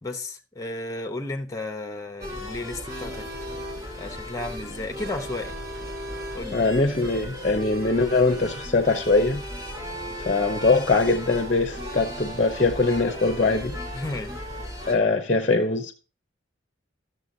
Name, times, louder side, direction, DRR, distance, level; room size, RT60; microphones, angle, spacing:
voice 1, 0.0-3.3 4.0-5.6 6.3-6.6 13.9-14.4, left 2 dB, 20° left, 1.1 m, -33 dB
sound 1, 2.2-15.0, equal, 20° right, 2.7 m, -36 dB
voice 2, 6.5-9.4 10.2-13.7 14.9-15.9, left 3 dB, 40° left, 0.8 m, -22 dB
12.5 x 6.7 x 3.9 m
head